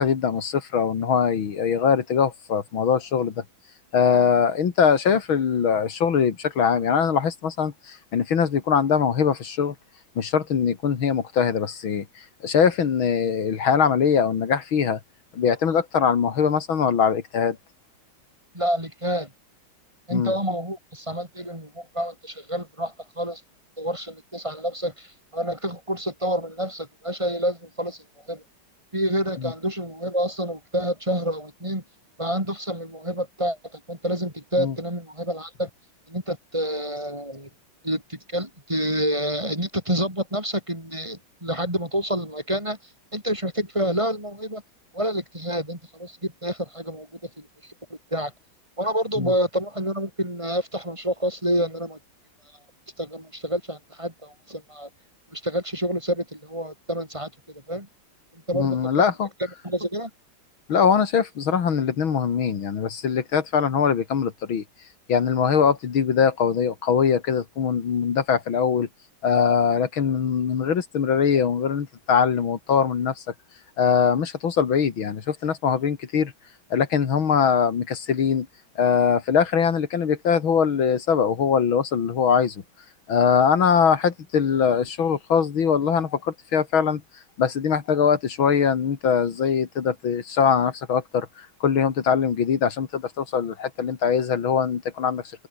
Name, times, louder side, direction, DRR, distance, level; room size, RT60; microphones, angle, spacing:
voice 1, 0.0-3.3 3.9-9.7 10.2-12.0 12.4-15.0 15.3-17.6 20.1-20.3 34.6-34.7 49.2-49.3 58.5-59.3 60.7-64.6 65.1-68.9 69.2-73.2 73.8-76.3 76.7-78.5 78.8-82.6 83.1-87.0 87.4-95.2, left 7 dB, 75° left, 2.7 m, -22 dB
voice 2, 18.5-19.3 20.1-23.4 23.8-28.4 28.9-31.8 32.2-35.7 36.1-37.5 37.8-42.8 43.1-44.6 44.9-47.7 48.1-48.3 48.8-52.0 53.0-54.9 55.3-57.3 57.7-57.9 58.3-58.8 59.6-60.1, equal, 15° right, 7.2 m, -28 dB
omnidirectional pair, 2.2 m